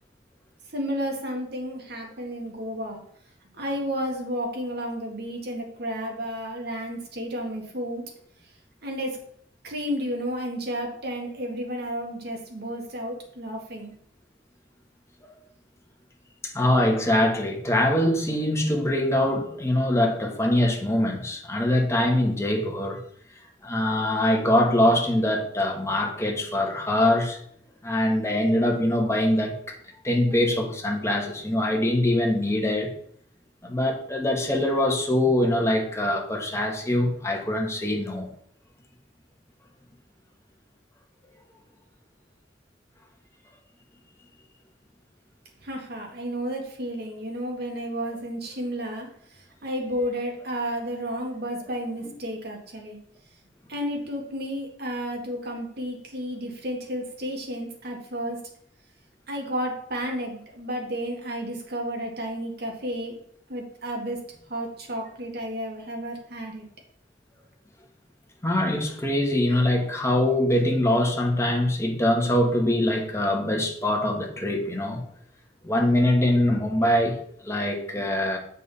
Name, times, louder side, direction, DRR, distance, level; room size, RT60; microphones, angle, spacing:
voice 1, 0.7-3.0 3.5-8.0 8.8-9.2 9.6-13.9 45.6-49.1 49.6-53.0 53.7-58.4 59.3-63.1 63.5-64.2 64.5-66.6, equal, 60° right, 1 dB, 1.9 m, -32 dB
voice 2, 16.4-23.0 23.6-27.4 27.8-29.6 30.0-32.9 33.6-38.3 68.4-75.0 75.6-77.2 77.4-78.4, left 1 dB, 15° left, 1 dB, 1.3 m, -23 dB
7.5 x 5.4 x 4.2 m, 0.64 s
head